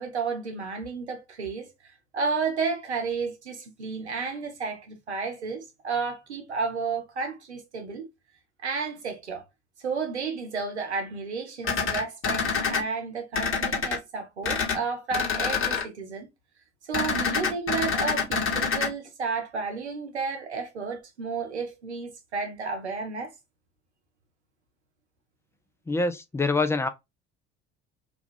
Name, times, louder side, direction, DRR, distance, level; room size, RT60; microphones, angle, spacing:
voice 1, 0.0-1.7 2.1-8.1 8.6-9.4 9.8-16.3 16.8-23.3, right 5 dB, 90° right, 0.6 m, -32 dB
sound 1, 11.6-12.8 13.3-14.0 14.4-14.8 15.1-15.8 16.9-18.9, left 5 dB, 40° left, 1.0 m, -26 dB
voice 2, 25.9-26.9, left 3 dB, 10° left, 0.3 m, -25 dB
2.4 x 2.2 x 3.3 m
figure-of-eight pair, 60°, 33 cm